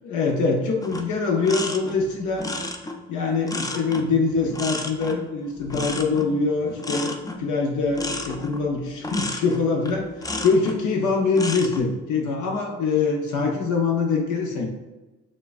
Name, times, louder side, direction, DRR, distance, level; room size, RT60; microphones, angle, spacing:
voice 1, 0.0-2.5 3.1-7.1 7.4-14.7, left 4 dB, 75° left, 0 dB, 0.7 m, -24 dB
sound 1, 0.8-10.8 11.2-11.8, left 2 dB, 10° left, 0.4 m, -32 dB
6.3 x 2.3 x 2.4 m, 1.2 s
cardioid pair, 90°, 30 cm